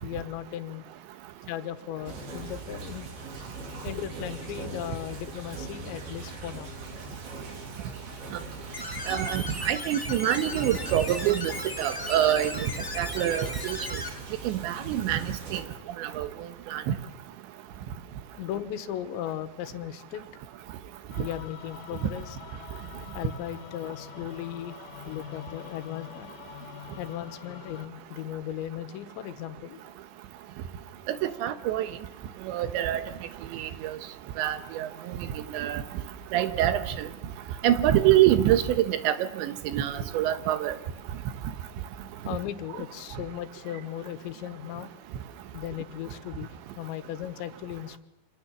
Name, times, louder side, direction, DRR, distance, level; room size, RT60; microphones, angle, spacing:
voice 1, 0.0-0.9 1.5-3.1 3.8-6.7 18.4-20.2 21.2-22.4 23.1-24.8 25.1-26.3 27.0-29.8 42.2-44.9 45.5-48.0, left 11 dB, 90° left, 11 dB, 3.5 m, -37 dB
sound 1, 2.1-15.6, right 3 dB, 60° right, 5.6 m, -41 dB
sound 2, 8.7-14.1, left 2 dB, 10° left, 1.2 m, -37 dB
voice 2, 9.1-11.5 11.8-12.7 13.0-13.8 14.4-15.6 16.0-16.3 16.7-17.0 31.1-31.9 32.5-33.0 33.5-34.0 34.4-34.9 35.4-35.8 36.3-37.1 37.6-40.8, right 12 dB, 90° right, 11 dB, 3.5 m, -25 dB
sound 3, 21.1-27.9, left 10 dB, 70° left, 3.5 m, -45 dB
28.0 x 26.0 x 7.3 m, 0.89 s
omnidirectional pair, 5.0 m